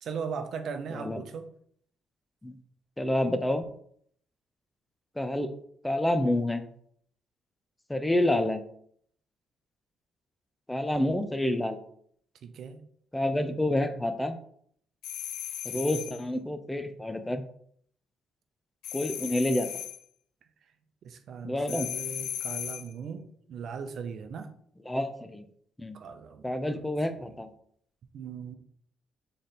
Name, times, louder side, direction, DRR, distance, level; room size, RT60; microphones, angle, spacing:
voice 1, 0.0-1.5 12.4-12.8 15.7-16.2 21.0-24.5 25.9-27.4 28.1-28.6, right 6 dB, 65° right, 8 dB, 0.6 m, -39 dB
voice 2, 0.9-1.2 2.4-2.5 3.0-3.6 5.2-5.5 5.8-6.7 7.9-8.6 10.7-11.8 13.1-14.4 15.6-17.4 18.9-19.7 21.4-21.9 24.9-25.5 25.8-26.0 26.4-27.5, left 1 dB, 10° left, 9 dB, 0.5 m, -28 dB
Loud doorbell, 15.0-16.2 18.8-20.0 21.7-22.9, left 11 dB, 90° left, 0.3 m, -36 dB
3.8 x 3.3 x 4.2 m, 0.64 s
cardioid pair, 90°, 0 cm